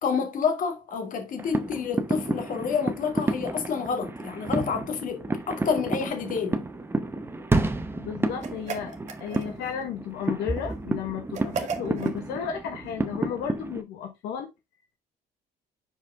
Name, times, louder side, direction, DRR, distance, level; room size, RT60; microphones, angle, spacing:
voice 1, 0.0-6.7, left 6 dB, 55° left, 2.0 m, -29 dB
sound 1, 1.4-13.8, right 2 dB, 15° right, 0.8 m, -30 dB
voice 2, 8.0-14.5, left 8 dB, 85° left, 1.4 m, -34 dB
sound 2, 8.4-9.7 11.3-12.2, right 5 dB, 45° right, 1.5 m, -35 dB
6.4 x 4.9 x 3.5 m
cardioid pair, 110°, 17 cm